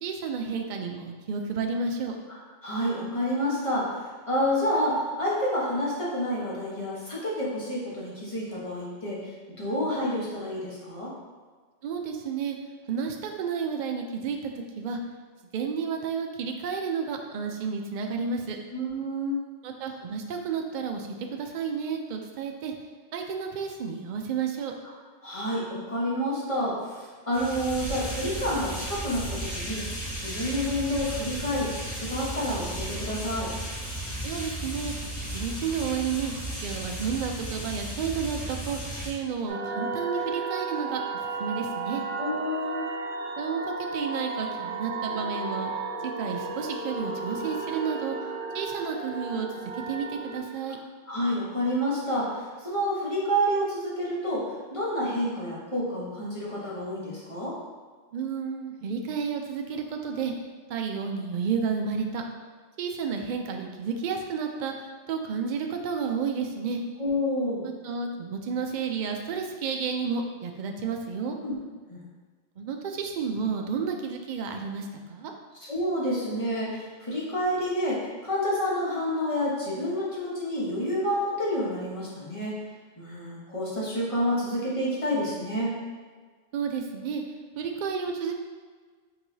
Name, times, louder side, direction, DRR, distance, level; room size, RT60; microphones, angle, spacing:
voice 1, 0.0-2.2 11.8-12.6 12.9-15.0 15.5-18.6 19.6-22.7 23.1-24.8 34.2-34.9 35.3-36.3 36.6-41.0 41.4-42.0 43.4-45.7 46.0-48.2 48.5-50.8 58.1-60.3 60.7-62.2 62.8-66.8 67.6-71.4 72.6-75.3 86.5-88.3, right 6 dB, 60° right, 3 dB, 0.5 m, -31 dB
voice 2, 2.6-11.1 18.7-19.4 25.2-33.5 42.2-42.9 51.1-54.4 54.7-57.6 67.0-67.6 71.4-71.6 71.9-72.0 75.7-82.6 83.0-85.7, equal, 30° left, -7 dB, 1.0 m, -29 dB
sound 1, 27.3-39.1, right 1 dB, 65° left, 2.0 m, -35 dB
sound 2, 39.5-50.4, right 4 dB, 85° right, 1.0 m, -34 dB
4.6 x 3.9 x 2.7 m, 1.5 s
omnidirectional pair, 1.3 m